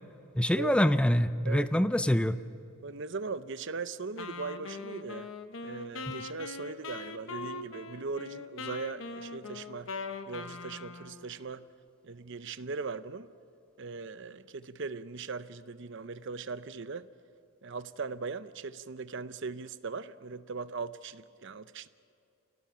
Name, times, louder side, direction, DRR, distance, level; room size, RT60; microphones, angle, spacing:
voice 1, 0.4-2.4, equal, 5° left, 0.5 m, -25 dB
voice 2, 2.8-5.3 5.6-9.9 10.3-11.7 12.0-13.3 13.8-17.1 17.6-21.9, right 4 dB, 55° right, 0.7 m, -39 dB
Wind instrument woodwind instrument, 4.2-11.3, left 4 dB, 65° left, 1.0 m, -41 dB
27.5 x 18.0 x 5.7 m
head